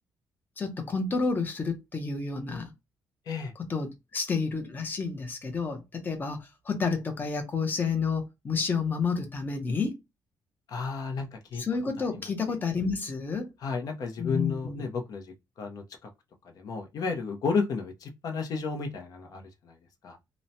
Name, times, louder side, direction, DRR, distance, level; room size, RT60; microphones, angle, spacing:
voice 1, 0.6-2.7 3.6-10.0 11.6-13.5 14.2-14.9, left 4 dB, 25° left, 0.7 m, -30 dB
voice 2, 10.7-11.6 12.0-12.1 13.6-16.1 16.5-19.7 20.0-20.2, left 4 dB, 55° left, 0.7 m, -32 dB
3.0 x 2.1 x 2.6 m
cardioid pair, 155°, 7 cm